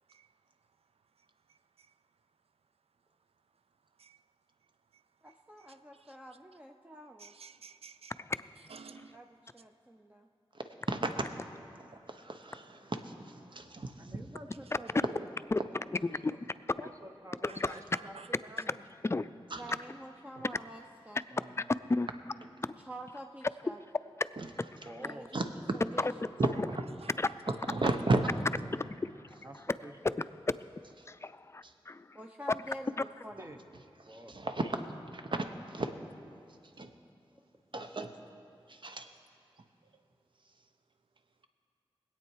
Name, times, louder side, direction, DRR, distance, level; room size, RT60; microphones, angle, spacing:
voice 1, 5.2-7.3 8.9-10.3 19.5-21.2 22.8-23.8 25.0-26.1 26.4-26.6 32.1-33.5 37.4-37.5, right 1 dB, 15° right, 2 dB, 0.6 m, -48 dB
voice 2, 7.2-8.1 8.7-9.2 17.5-18.3 27.0-27.3, right 5 dB, 80° right, 12 dB, 0.4 m, -52 dB
voice 3, 12.1-13.9 19.5-19.6 24.4-24.5 25.3-25.5 26.4-26.8 27.7-28.2 34.1-34.9 35.1-35.9 36.8-36.9 37.7-38.1 38.7-39.1, right 2 dB, 55° right, 6 dB, 1.0 m, -33 dB
voice 4, 14.0-16.4 16.8-18.8 21.3-21.7 24.8-25.3 27.7-28.5 29.4-30.2 33.4-33.6 34.1-34.4, right 1 dB, 30° right, 4 dB, 1.2 m, -49 dB
voice 5, 17.4-17.7 19.0-19.3 21.9-22.1 26.0-26.1 27.2-27.3 30.5-30.6 31.1-32.2 33.0-33.1, left 3 dB, 25° left, 13 dB, 0.4 m, -32 dB
20.5 x 8.6 x 4.7 m, 2.6 s
wide cardioid pair, 50°, 10 cm